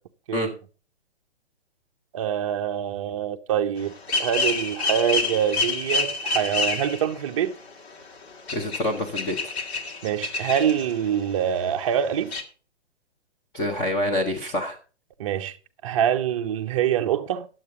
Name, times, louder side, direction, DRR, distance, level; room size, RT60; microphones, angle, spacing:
voice 1, 2.1-7.6 10.0-12.3 15.2-15.6 15.8-17.5, right 9 dB, 30° right, 0.7 m, -25 dB
sound 1, 3.9-7.2 7.6-7.7 8.0-8.1 8.5-11.0 11.3-11.4 11.6-11.7 11.9-12.0 12.3-12.4, left 3 dB, 65° left, 2.0 m, -28 dB
voice 2, 8.5-9.5 13.5-14.8, left 1 dB, 10° left, 0.9 m, -26 dB
10.5 x 7.8 x 4.8 m
hypercardioid pair, 160°, 34 cm